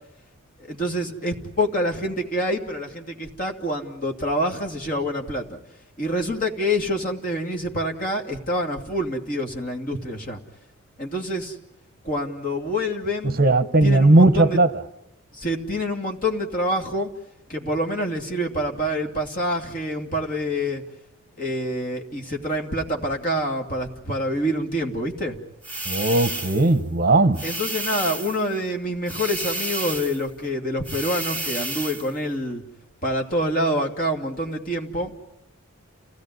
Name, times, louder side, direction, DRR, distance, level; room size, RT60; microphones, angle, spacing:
voice 1, 0.7-5.6 6.0-10.4 11.0-11.5 12.0-13.4 13.8-14.6 15.4-17.1 17.5-20.8 21.4-25.4 27.4-32.6 33.0-35.1, equal, 40° left, 2.7 m, -26 dB
voice 2, 13.2-14.7 25.9-27.4, right 2 dB, 45° right, 1.1 m, -17 dB
sound 1, 25.6-26.7 27.3-28.5 29.1-30.2 30.8-32.1, right 2 dB, 10° left, 2.8 m, -31 dB
29.5 x 17.5 x 9.5 m
head